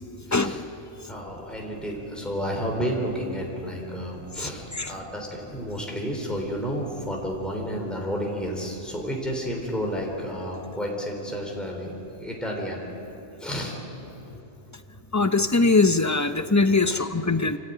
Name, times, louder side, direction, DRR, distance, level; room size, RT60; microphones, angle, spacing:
voice 1, 0.3-0.6 1.1-12.8 13.4-13.8 14.3-14.4 16.8-17.1, equal, ahead, -1 dB, 3.4 m, -31 dB
voice 2, 15.1-17.6, left 3 dB, 30° left, 9 dB, 0.3 m, -21 dB
26.0 x 15.0 x 9.2 m, 3.0 s
omnidirectional pair, 1.3 m